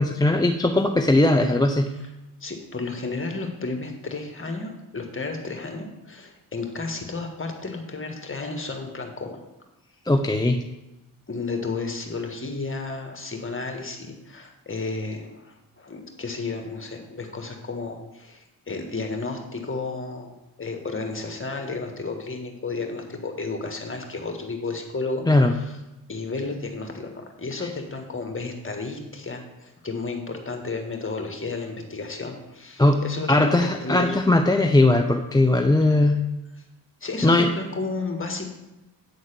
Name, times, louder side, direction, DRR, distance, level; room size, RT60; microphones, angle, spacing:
voice 1, 0.0-1.9 10.1-10.6 25.3-25.5 32.8-33.0 33.3-36.2 37.2-37.5, left 2 dB, 10° left, 5 dB, 0.6 m, -19 dB
voice 2, 2.4-9.4 11.3-25.8 26.1-34.2 37.0-38.5, left 3 dB, 30° left, 4 dB, 1.7 m, -32 dB
8.9 x 3.9 x 6.8 m, 1.0 s
supercardioid pair, 55°, 43 cm